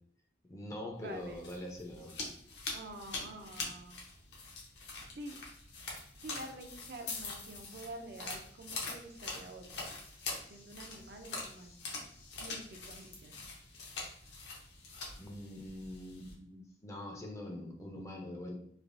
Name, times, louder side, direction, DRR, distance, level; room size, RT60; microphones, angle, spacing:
voice 1, 0.4-2.2 15.2-18.6, left 1 dB, 15° left, 0 dB, 0.4 m, -44 dB
voice 2, 1.0-1.5 2.7-4.0 5.2-5.4 6.2-9.9 10.5-11.8 12.4-13.4, right 2 dB, 60° right, 5 dB, 0.4 m, -48 dB
sound 1, 1.1-16.3, left 3 dB, 75° left, 0.8 m, -44 dB
3.2 x 2.3 x 2.5 m, 0.65 s
head